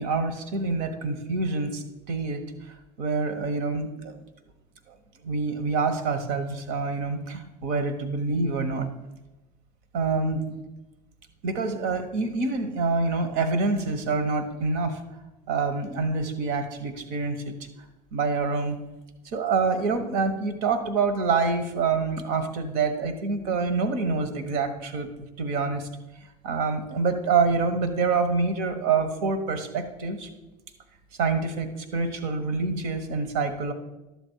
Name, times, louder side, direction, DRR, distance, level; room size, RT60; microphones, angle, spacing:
voice 1, 0.0-4.2 5.2-8.9 9.9-10.4 11.4-15.0 15.5-17.5 18.1-18.8 19.2-25.1 25.4-25.9 26.4-30.3 31.2-33.7, right 4 dB, 70° right, 9 dB, 1.2 m, -26 dB
12.0 x 7.0 x 4.6 m, 1.0 s
hypercardioid pair, 65°, 20 cm